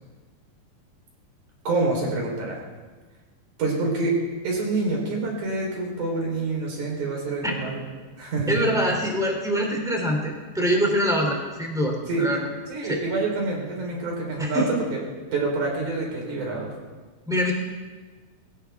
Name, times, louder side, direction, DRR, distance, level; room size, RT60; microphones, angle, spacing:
voice 1, 1.6-2.6 3.6-7.8 8.2-8.6 12.1-12.3 12.7-15.0 15.3-16.7, right 3 dB, 50° right, -1 dB, 5.0 m, -27 dB
voice 2, 8.5-12.5 12.9-13.0 14.4-14.7 17.3-17.5, equal, ahead, 0 dB, 1.7 m, -24 dB
21.5 x 17.5 x 3.5 m, 1.4 s
omnidirectional pair, 4.8 m